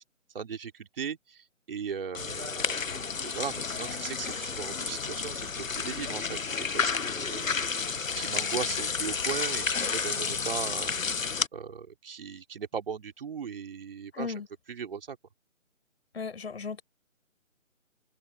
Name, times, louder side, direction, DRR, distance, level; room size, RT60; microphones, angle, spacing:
voice 1, 0.3-2.9 3.2-7.5 8.1-11.0 11.5-15.2, right 6 dB, 45° right, 4.0 m, -38 dB
sound 1, 2.1-11.5, left 5 dB, 80° left, 1.2 m, -31 dB
voice 2, 14.1-14.5 16.1-16.8, left 5 dB, 50° left, 5.8 m, -36 dB
figure-of-eight pair, 155°, 39 cm